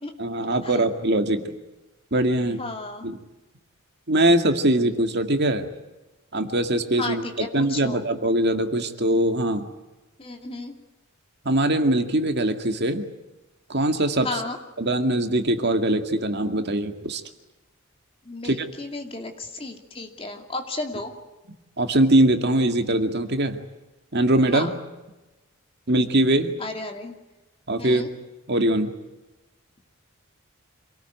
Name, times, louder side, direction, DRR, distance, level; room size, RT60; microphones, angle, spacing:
voice 1, 0.2-1.5 2.1-2.6 3.0-3.2 4.1-5.7 6.3-9.7 11.5-13.1 13.7-14.4 14.8-17.2 18.4-18.7 21.8-23.6 24.1-24.7 25.9-26.5 27.7-28.1 28.5-28.9, right 1 dB, 50° right, 6 dB, 2.1 m, -22 dB
voice 2, 2.6-3.1 7.0-8.0 10.2-10.7 14.2-14.6 18.3-21.1 24.5-24.7 26.6-27.1 27.8-28.1, left 2 dB, 25° left, 4 dB, 2.7 m, -33 dB
27.0 x 19.0 x 9.4 m, 1.1 s
head